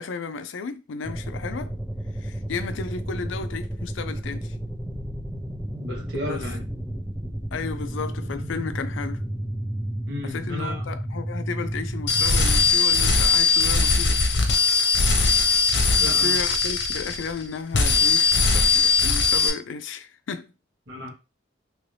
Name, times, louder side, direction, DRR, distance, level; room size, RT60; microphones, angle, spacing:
voice 1, 0.0-1.7 2.2-4.6 6.3-6.4 7.5-9.2 10.2-14.2 16.1-20.5, left 5 dB, 85° left, 0.4 m, -33 dB
sound 1, 1.0-12.7, right 1 dB, 5° right, 0.5 m, -32 dB
voice 2, 5.8-6.7 10.1-10.8 16.0-16.5 20.9-21.1, left 1 dB, 70° right, 1.4 m, -33 dB
sound 2, 12.1-17.4 17.7-19.5, left 4 dB, 65° left, 0.8 m, -20 dB
3.0 x 2.7 x 3.2 m
head